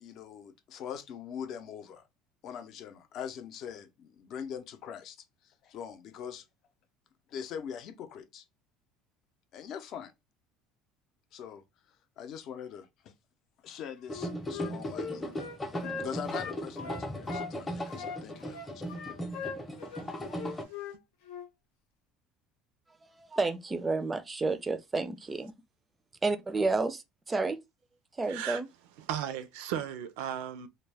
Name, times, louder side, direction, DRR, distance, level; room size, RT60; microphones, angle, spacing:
voice 1, 0.0-2.0 2.4-5.2 5.4-6.4 7.3-8.4 9.5-10.1 11.3-11.6 12.2-13.1 13.6-15.3 16.0-18.7, left 8 dB, 55° left, 0.6 m, -42 dB
Wind instrument woodwind instrument, 14.1-17.5 17.9-21.0 21.3-21.5, left 6 dB, 90° left, 0.7 m, -40 dB
sound 1, 14.1-20.6, equal, 15° left, 0.7 m, -37 dB
voice 2, 23.2-25.5 26.2-27.6 28.2-28.7, right 3 dB, 20° right, 0.4 m, -30 dB
voice 3, 28.3-28.6 29.1-30.7, right 10 dB, 85° right, 0.4 m, -36 dB
2.2 x 2.1 x 3.3 m
supercardioid pair, 110°, 0 cm